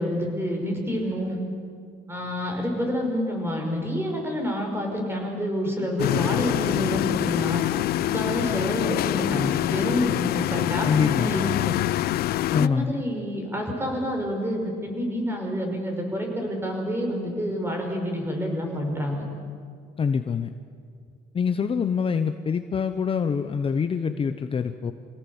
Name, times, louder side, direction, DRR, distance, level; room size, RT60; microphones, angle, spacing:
voice 1, 0.0-1.4 2.1-7.6 8.0-11.8 12.5-19.2, equal, 15° right, 2 dB, 5.5 m, -28 dB
sound 1, 6.0-12.7, left 15 dB, 65° left, 0.5 m, -25 dB
voice 2, 10.8-11.3 12.5-13.0 20.0-20.5 21.3-24.9, left 6 dB, 35° left, 8 dB, 0.9 m, -25 dB
26.0 x 17.5 x 7.2 m, 2.2 s
cardioid pair, 110°, 17 cm